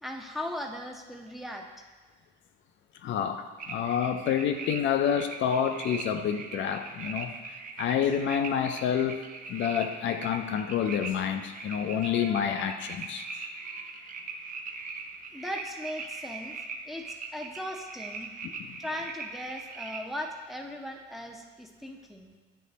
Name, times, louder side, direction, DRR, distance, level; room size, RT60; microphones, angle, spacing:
voice 1, 0.0-1.7 15.3-16.5 16.9-18.3 18.8-22.3, left 1 dB, ahead, 2 dB, 0.6 m, -38 dB
voice 2, 3.0-7.3 7.8-13.3 18.4-18.8, left 8 dB, 70° left, 7 dB, 0.4 m, -28 dB
sound 1, 3.6-20.0, right 4 dB, 45° right, 0.5 m, -41 dB
8.4 x 3.1 x 4.0 m, 1.3 s
cardioid pair, 90°, 20 cm